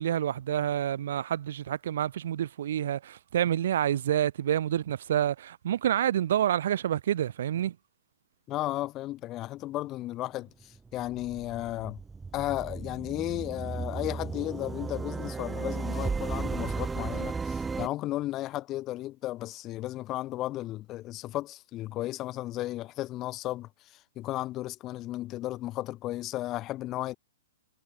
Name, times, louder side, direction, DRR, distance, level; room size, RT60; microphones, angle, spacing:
voice 1, 0.0-7.8, right 10 dB, 65° right, 3.8 m, -28 dB
voice 2, 8.5-12.0 12.3-27.2, left 16 dB, 30° left, 6.5 m, -34 dB
sound 1, 10.6-17.9, right 4 dB, 10° right, 1.4 m, -35 dB
hypercardioid pair, 130°, 0 cm